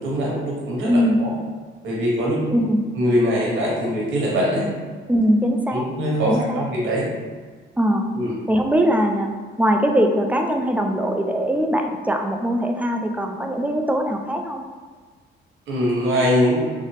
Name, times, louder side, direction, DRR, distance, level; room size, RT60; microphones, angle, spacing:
voice 1, 0.0-1.3 1.8-2.5 2.9-4.7 5.7-7.1 8.1-8.3 15.7-16.7, equal, 80° right, -5 dB, 1.2 m, -22 dB
voice 2, 0.9-1.2 2.5-2.8 5.1-5.8 6.3-6.6 7.8-8.1 8.5-9.3 9.6-14.6, equal, 10° right, 3 dB, 0.3 m, -21 dB
3.9 x 2.0 x 3.2 m, 1.5 s
cardioid pair, 90°, 20 cm